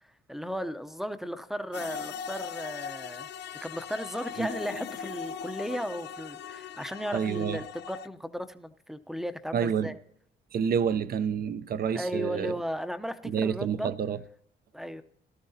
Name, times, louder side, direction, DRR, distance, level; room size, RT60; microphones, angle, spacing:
voice 1, 0.3-3.3 3.6-10.0 11.9-13.9 14.7-15.0, equal, ahead, 0.7 m, -35 dB
sound 1, 1.7-8.1, left 7 dB, 60° left, 0.5 m, -40 dB
voice 2, 7.1-7.6 9.5-9.9 10.5-12.5 13.2-14.2, right 7 dB, 50° right, 0.6 m, -28 dB
17.5 x 12.5 x 2.8 m
cardioid pair, 90°, 20 cm